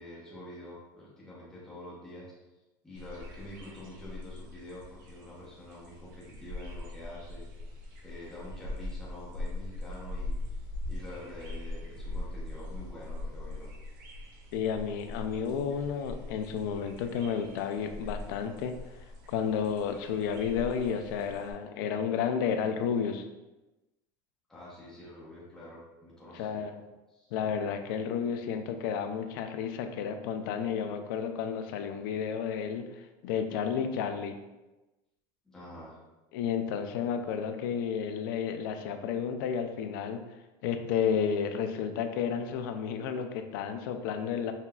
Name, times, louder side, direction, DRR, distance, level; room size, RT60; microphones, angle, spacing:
voice 1, 0.0-2.3 2.8-7.5 8.0-13.7 24.5-26.7 27.1-27.3 35.4-36.0, left 1 dB, 5° left, -8 dB, 0.8 m, -47 dB
sound 1, 2.9-21.5, left 2 dB, 85° right, 0.9 m, -41 dB
voice 2, 14.5-18.7 19.3-23.3 26.3-26.7 27.3-34.3 36.3-40.2 40.6-44.5, left 7 dB, 75° left, 7 dB, 0.4 m, -31 dB
5.6 x 2.4 x 2.3 m, 1.1 s
cardioid pair, 155°, 11 cm